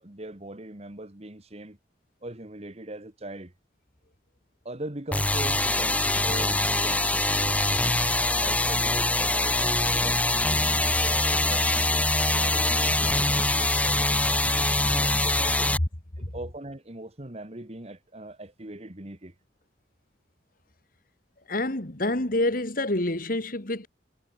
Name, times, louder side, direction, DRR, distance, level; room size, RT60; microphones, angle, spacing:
voice 1, 0.0-1.8 2.2-3.5 4.6-7.8 8.3-11.9 12.3-15.8 16.2-19.3, right 1 dB, 35° right, 1.8 m, -41 dB
sound 1, 5.1-15.8, left 2 dB, 10° left, 1.4 m, -24 dB
voice 2, 21.5-23.9, left 1 dB, 55° left, 2.7 m, -27 dB
head